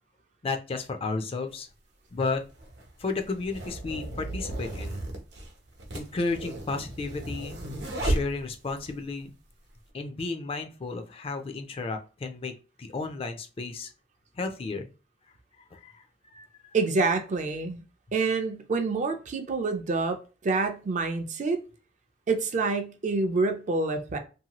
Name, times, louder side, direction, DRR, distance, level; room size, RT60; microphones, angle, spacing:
voice 1, 0.4-1.7 2.1-2.4 3.0-5.0 5.9-7.5 8.0-9.3 9.9-12.5 12.8-13.9 14.3-14.9 15.7-16.0 16.3-16.5, left 3 dB, 35° left, 0.4 m, -33 dB
sound 1, 1.5-1.6 2.5-8.9, right 1 dB, 85° right, 0.8 m, -34 dB
voice 2, 16.7-17.8 18.1-21.6 22.3-24.2, right 3 dB, 45° right, 0.4 m, -27 dB
2.7 x 2.3 x 2.9 m
head